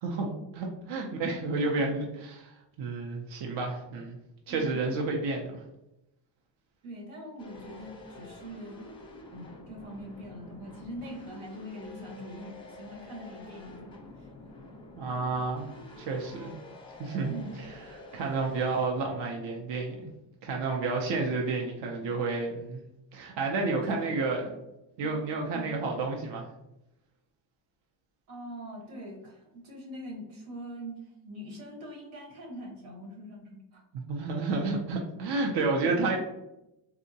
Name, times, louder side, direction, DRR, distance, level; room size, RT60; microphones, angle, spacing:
voice 1, 0.0-4.2 4.5-5.6 15.0-15.7 16.0-16.5 17.0-17.8 18.1-20.1 20.4-22.8 23.1-24.4 25.0-26.5 34.1-36.2, right 3 dB, 60° right, 0 dB, 0.6 m, -30 dB
voice 2, 4.5-4.8 6.8-8.9 9.3-14.3 17.3-17.6 23.7-24.3 25.0-25.2 25.5-25.7 28.3-33.8 35.8-36.2, equal, 85° right, -1 dB, 1.3 m, -43 dB
sound 1, 7.4-18.9, left 2 dB, 10° left, 0.6 m, -48 dB
3.6 x 2.1 x 2.6 m, 0.90 s
cardioid pair, 105°, 48 cm